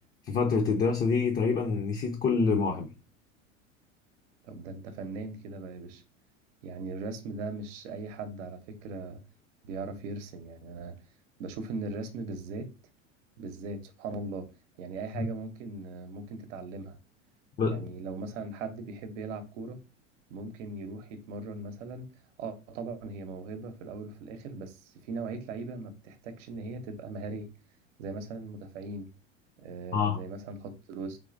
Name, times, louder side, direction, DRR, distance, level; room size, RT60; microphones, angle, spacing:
voice 1, 0.3-2.9 15.2-15.3 17.6-17.9 29.9-30.2, left 5 dB, 25° left, 0.6 m, -26 dB
voice 2, 4.4-6.0 6.6-9.2 9.6-11.0 11.4-12.7 13.4-14.5 14.8-17.0 17.6-19.8 20.3-22.1 22.4-27.5 28.0-29.1 29.6-31.2, right 3 dB, 65° right, 0.8 m, -39 dB
3.8 x 3.0 x 2.5 m
hypercardioid pair, 85°, 39 cm